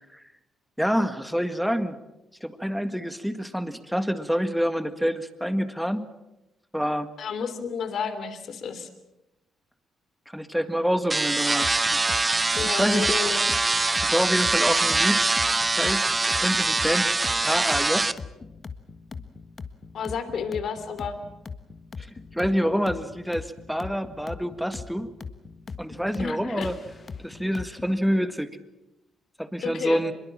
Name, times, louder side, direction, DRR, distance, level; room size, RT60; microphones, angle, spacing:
voice 1, 0.8-2.0 2.4-6.1 6.7-7.1 10.3-13.2 14.0-15.4 15.7-16.1 16.4-17.1 17.4-18.2 22.0-22.1 22.3-25.1 25.8-26.8 27.2-28.5 29.4-30.1, equal, ahead, 10 dB, 1.8 m, -27 dB
voice 2, 7.2-8.9 12.6-13.4 19.9-21.2 26.2-26.7 29.6-30.0, left 6 dB, 60° left, 10 dB, 3.1 m, -31 dB
sound 1, 11.1-18.1, right 3 dB, 20° right, 0.8 m, -23 dB
sound 2, 11.6-27.8, left 5 dB, 40° left, 1.5 m, -40 dB
24.0 x 22.0 x 7.5 m, 0.95 s
cardioid pair, 90°, 0 cm